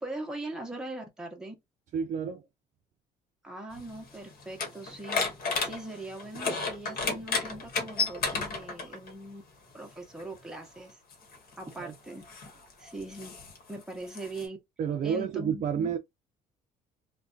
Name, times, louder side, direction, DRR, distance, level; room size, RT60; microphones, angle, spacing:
voice 1, 0.0-1.5 3.4-5.2 5.6-8.2 8.5-9.4 9.7-11.0 11.6-12.2 12.8-13.3 13.7-14.6 15.0-15.9, right 2 dB, 5° right, 0.8 m, -40 dB
voice 2, 1.9-2.5 11.8-11.9 14.8-16.0, right 7 dB, 45° right, 0.4 m, -30 dB
sound 1, 3.7-9.1 10.2-10.3 11.1-14.5, left 4 dB, 60° left, 1.1 m, -33 dB
2.5 x 2.2 x 2.4 m
cardioid pair, 110°, 17 cm